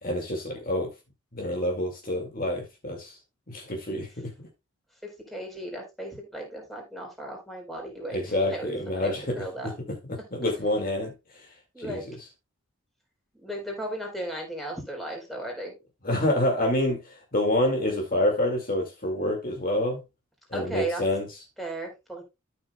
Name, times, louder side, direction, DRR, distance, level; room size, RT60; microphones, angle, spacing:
voice 1, 0.0-0.9 1.3-3.2 3.5-4.3 8.1-9.7 10.1-11.5 11.8-12.0 16.0-20.0 20.5-21.3, left 1 dB, 40° left, 2.1 m, -27 dB
voice 2, 5.3-9.7 10.4-10.5 11.7-12.1 13.4-15.7 20.5-21.0 21.6-22.2, right 1 dB, ahead, 4.0 m, -36 dB
13.5 x 6.6 x 2.3 m
head